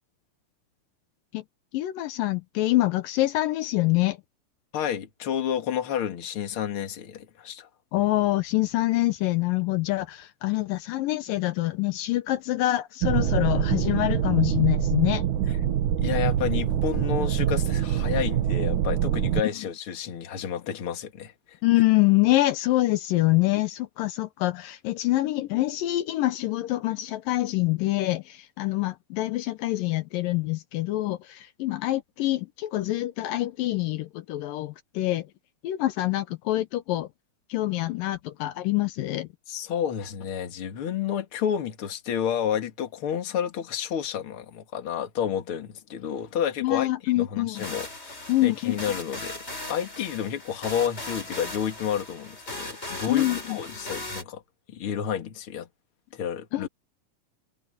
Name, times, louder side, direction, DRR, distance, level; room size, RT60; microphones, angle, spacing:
voice 1, 1.7-4.2 7.9-15.3 21.6-35.3 35.6-37.1 37.5-39.3 46.6-47.6 48.3-48.8 53.1-53.6 56.5-56.7, left 17 dB, 80° left, 2.5 m, -25 dB
voice 2, 4.7-7.7 16.0-21.6 39.5-49.3 49.7-54.4 54.7-55.7 56.1-56.7, left 9 dB, 45° left, 2.4 m, -30 dB
sound 1, 13.0-19.4, right 10 dB, 65° right, 2.5 m, -25 dB
sound 2, 47.5-54.2, left 2 dB, 15° left, 5.8 m, -38 dB
omnidirectional pair, 4.0 m